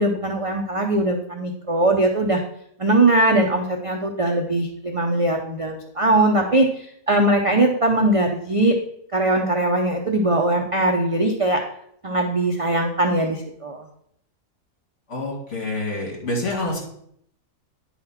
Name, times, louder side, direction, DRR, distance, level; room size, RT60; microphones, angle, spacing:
voice 1, 0.0-2.4 2.8-6.7 7.1-8.8 9.1-11.6 12.0-13.8, right 1 dB, 40° right, 2 dB, 0.5 m, -20 dB
voice 2, 15.1-16.8, left 2 dB, 45° left, -3 dB, 3.0 m, -27 dB
9.8 x 4.3 x 5.8 m, 0.69 s
omnidirectional pair, 1.7 m